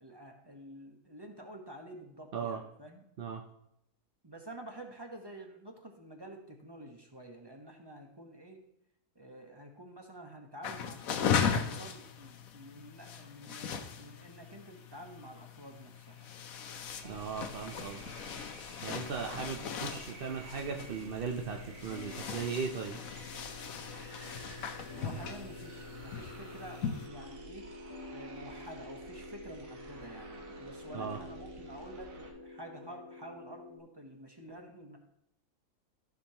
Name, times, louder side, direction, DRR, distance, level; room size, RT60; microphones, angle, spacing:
voice 1, 0.0-3.0 4.2-8.6 9.1-16.3 17.0-17.3 24.9-27.7 28.1-35.0, right 1 dB, 20° right, 2 dB, 0.9 m, -49 dB
sound 1, 10.6-27.1, left 7 dB, 65° left, 1.1 m, -38 dB
sound 2, 15.3-15.4 15.6-32.3, right 3 dB, 85° right, 1.8 m, -52 dB
voice 2, 17.0-18.1 18.8-23.0 30.9-31.2, right 6 dB, 60° right, 2 dB, 0.6 m, -37 dB
sound 3, 20.5-33.8, left 1 dB, 50° left, 1.5 m, -49 dB
14.5 x 6.0 x 2.9 m, 0.78 s
omnidirectional pair, 1.7 m